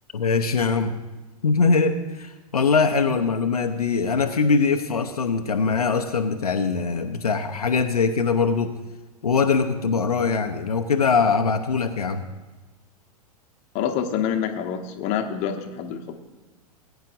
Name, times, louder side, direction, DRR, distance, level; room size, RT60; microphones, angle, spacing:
voice 1, 0.1-0.9 1.4-8.7 9.2-12.2, left 5 dB, 75° left, 5 dB, 0.7 m, -22 dB
voice 2, 13.7-16.1, left 8 dB, 35° left, 5 dB, 1.0 m, -27 dB
20.0 x 9.1 x 2.6 m, 1.2 s
figure-of-eight pair, 95°, 20 cm